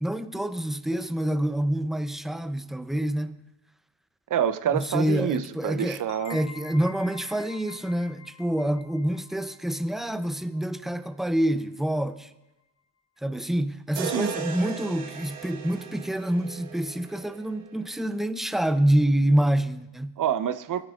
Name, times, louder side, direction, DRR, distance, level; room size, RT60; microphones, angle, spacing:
voice 1, 0.0-3.4 4.7-6.0 6.3-12.3 13.2-20.2, right 1 dB, ahead, 0.6 m, -27 dB
voice 2, 4.3-6.4 14.1-14.3 20.2-20.9, right 9 dB, 40° right, 0.8 m, -27 dB
sound 1, 6.1-11.5, left 5 dB, 85° left, 1.6 m, -47 dB
sound 2, 14.0-18.0, right 7 dB, 75° right, 1.6 m, -37 dB
19.0 x 9.8 x 2.5 m
supercardioid pair, 80°, 50 cm